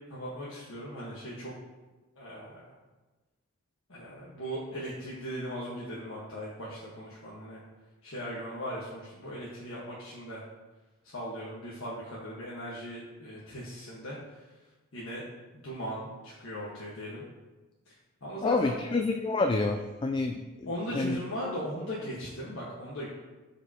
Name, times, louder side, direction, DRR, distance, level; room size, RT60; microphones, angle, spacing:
voice 1, 0.1-1.5 2.2-2.7 3.9-7.6 8.0-10.4 11.0-14.5 14.9-15.2 15.6-17.2 18.2-18.9 20.7-23.1, equal, 65° left, -7 dB, 1.4 m, -38 dB
voice 2, 18.4-21.2, left 3 dB, 20° left, 4 dB, 0.3 m, -28 dB
12.0 x 5.0 x 2.9 m, 1.2 s
head